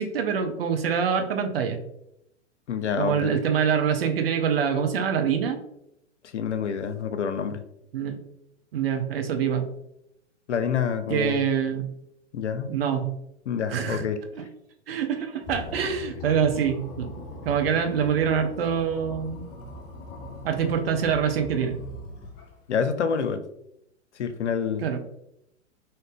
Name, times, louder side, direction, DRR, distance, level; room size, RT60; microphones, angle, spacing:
voice 1, 0.0-1.8 3.0-5.6 7.9-8.2 8.7-9.7 11.1-11.8 12.7-13.1 13.7-14.0 14.4-14.5 14.9-17.1 17.4-19.5 20.4-21.8 24.8-25.0, right 7 dB, 55° right, 6 dB, 0.7 m, -25 dB
voice 2, 2.7-3.3 6.3-7.6 10.5-11.4 12.3-12.7 13.5-14.2 22.7-23.4 24.2-25.0, left 7 dB, 70° left, 10 dB, 0.6 m, -27 dB
sound 1, 15.4-22.7, left 2 dB, 30° left, 1.0 m, -40 dB
3.8 x 2.7 x 3.6 m, 0.80 s
figure-of-eight pair, 110°, 36 cm